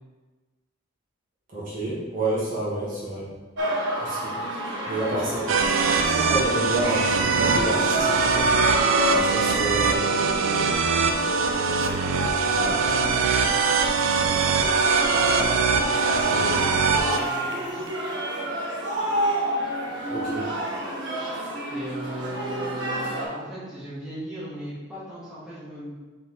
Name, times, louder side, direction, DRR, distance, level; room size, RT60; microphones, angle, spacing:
voice 1, 1.5-3.3 4.0-4.3 4.9-5.5 6.1-8.5 9.1-10.0 12.5-12.8 16.1-16.5 20.1-20.5, right 2 dB, 40° right, -8 dB, 1.8 m, -29 dB
sound 1, 3.6-23.2, right 1 dB, 65° right, 1.2 m, -29 dB
sound 2, 5.5-17.2, right 5 dB, 80° right, 0.5 m, -23 dB
voice 2, 9.7-11.3 12.6-13.7 16.2-17.9 21.7-25.9, right 1 dB, 5° right, -12 dB, 1.9 m, -38 dB
4.8 x 4.1 x 4.7 m, 1.3 s
head